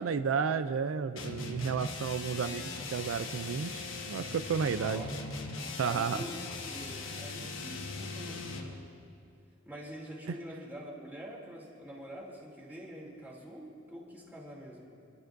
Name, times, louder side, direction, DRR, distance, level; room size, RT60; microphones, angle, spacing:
voice 1, 0.0-5.0 5.8-6.2 10.3-10.4, right 6 dB, 85° right, 11 dB, 0.4 m, -32 dB
sound 1, 1.1-8.8, left 3 dB, 75° left, 1.3 m, -40 dB
voice 2, 4.7-5.1 5.8-6.4 6.6-8.8 9.6-15.0, equal, 10° right, -4 dB, 2.8 m, -45 dB
28.5 x 12.0 x 2.6 m, 2.5 s
head